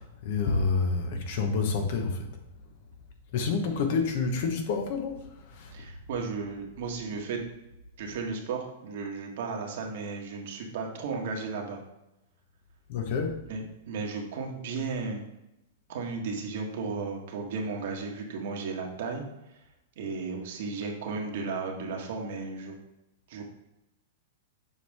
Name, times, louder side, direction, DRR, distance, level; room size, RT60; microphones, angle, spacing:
voice 1, 0.0-2.3 3.3-5.2 5.6-5.7 12.9-13.4, left 4 dB, 55° left, 5 dB, 1.1 m, -28 dB
voice 2, 5.7-7.4 8.0-11.8 13.5-15.2 15.9-19.2 20.0-22.7 23.3-23.4, right 4 dB, 65° right, 1 dB, 1.5 m, -34 dB
7.0 x 4.7 x 3.6 m, 0.93 s
hypercardioid pair, 140°, 0 cm